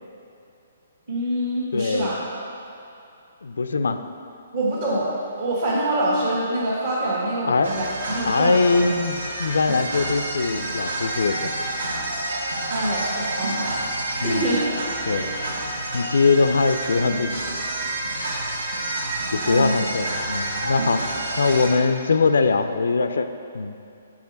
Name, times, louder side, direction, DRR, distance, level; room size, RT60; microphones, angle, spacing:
voice 1, 1.1-2.2 4.5-5.1 5.4-8.6 12.7-13.7 14.1-14.7 15.1-15.4 19.4-19.9, right 1 dB, 50° right, -9 dB, 1.4 m, -25 dB
voice 2, 1.7-2.1 3.4-4.0 7.5-7.7 8.2-11.5 14.2-14.5 15.1-15.3 15.9-17.3 19.3-21.0 21.4-23.3 23.5-23.8, left 4 dB, 70° left, 9 dB, 0.3 m, -21 dB
sound 1, 7.6-21.7, right 1 dB, 70° right, 0.9 m, -29 dB
7.2 x 4.3 x 4.0 m, 2.6 s
figure-of-eight pair, 130°, 0 cm